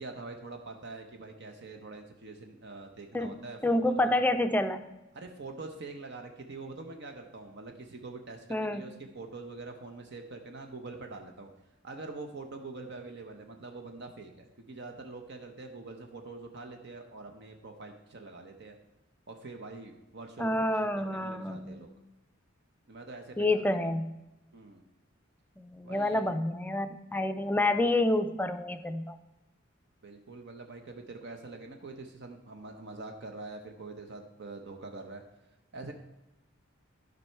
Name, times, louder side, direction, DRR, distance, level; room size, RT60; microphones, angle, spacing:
voice 1, 0.0-4.2 5.1-11.5 11.8-18.8 19.3-20.7 21.0-21.9 22.9-23.6 24.5-24.8 25.8-26.3 30.0-35.2 35.7-35.9, right 3 dB, 60° right, 4 dB, 0.8 m, -44 dB
voice 2, 3.1-4.8 8.5-8.8 20.4-21.8 23.4-24.1 25.6-29.2, left 1 dB, 10° left, 9 dB, 0.5 m, -28 dB
12.0 x 5.4 x 4.6 m, 0.97 s
head